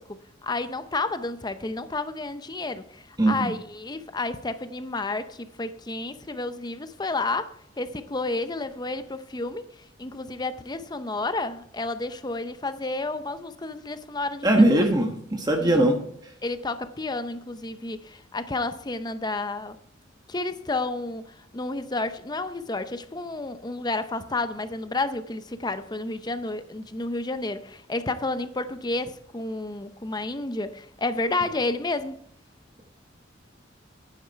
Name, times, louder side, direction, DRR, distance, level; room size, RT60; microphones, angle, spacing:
voice 1, 0.0-9.7 10.0-14.9 15.6-15.9 16.4-19.8 20.3-32.2, left 2 dB, 20° left, 0.6 m, -31 dB
voice 2, 3.2-3.5 14.4-16.0, right 1 dB, 20° right, 1.2 m, -20 dB
11.0 x 9.6 x 4.6 m
head